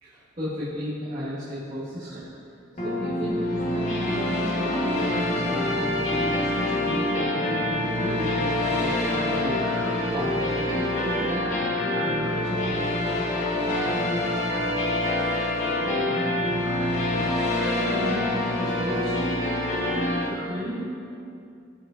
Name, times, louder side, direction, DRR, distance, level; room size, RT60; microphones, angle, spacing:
voice 1, 0.0-2.3 2.8-14.2 14.6-14.9 15.4-18.3 18.6-19.1 20.1-20.8, equal, 40° right, -12 dB, 1.7 m, -35 dB
sound 1, 2.8-20.2, left 1 dB, 40° left, 1.3 m, -26 dB
13.5 x 4.9 x 2.5 m, 2.5 s
head